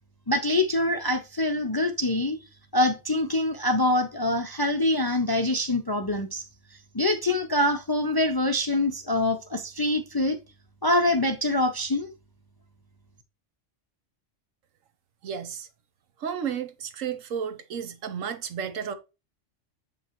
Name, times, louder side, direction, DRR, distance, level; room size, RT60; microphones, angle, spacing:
voice 1, 0.3-2.4 2.7-6.4 6.9-10.4 10.8-12.1, left 1 dB, 35° left, 0.4 m, -25 dB
voice 2, 15.2-15.7 16.2-18.9, right 7 dB, 90° right, 1.3 m, -32 dB
7.7 x 5.3 x 3.0 m
omnidirectional pair, 1.3 m